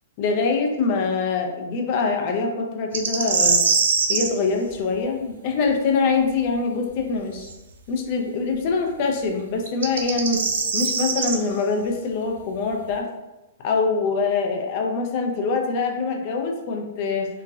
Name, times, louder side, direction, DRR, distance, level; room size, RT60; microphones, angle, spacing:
voice 1, 0.2-3.6 4.1-7.5 7.9-10.5 10.7-13.1 13.6-17.3, left 4 dB, 35° left, 2 dB, 0.4 m, -24 dB
sound 1, 2.9-4.3 7.5-7.6 9.7-11.4, right 5 dB, 80° right, 0.4 m, -22 dB
3.0 x 2.5 x 2.3 m, 1.0 s
hypercardioid pair, 165°, 0 cm